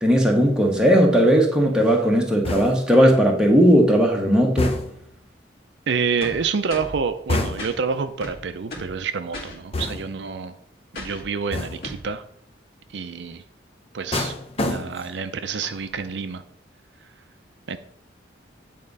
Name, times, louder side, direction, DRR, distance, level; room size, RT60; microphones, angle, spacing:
voice 1, 0.0-4.7, equal, 5° right, -1 dB, 1.2 m, -17 dB
sound 1, 2.4-3.0 4.6-5.2 7.3-7.9 9.7-10.3 11.5-12.0 14.1-15.2 15.6-16.0, left 2 dB, 30° left, 0.7 m, -28 dB
voice 2, 5.9-10.5 11.0-12.2 12.9-13.4 13.9-16.4 17.7-17.8, right 5 dB, 70° right, 9 dB, 0.5 m, -28 dB
sound 2, 6.2-7.0 7.6-7.8 8.2-9.0 9.3-9.6 10.9-11.3 11.8-12.1, left 1 dB, 55° left, 2.2 m, -36 dB
8.8 x 3.6 x 5.3 m, 0.67 s
head